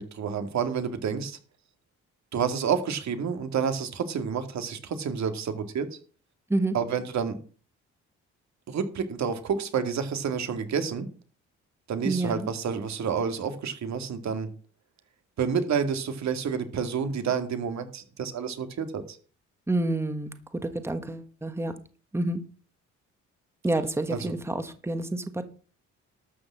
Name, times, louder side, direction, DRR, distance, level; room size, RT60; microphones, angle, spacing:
voice 1, 0.0-1.4 2.3-5.9 6.7-7.4 8.7-11.1 11.9-14.5 15.4-19.2 24.1-24.3, right 6 dB, 65° right, 8 dB, 2.2 m, -29 dB
voice 2, 12.0-12.5 19.7-20.3 20.6-21.7 22.1-22.4 23.6-25.4, right 2 dB, 10° right, 9 dB, 1.4 m, -28 dB
12.5 x 6.0 x 7.5 m, 0.39 s
cardioid pair, 90°, 30 cm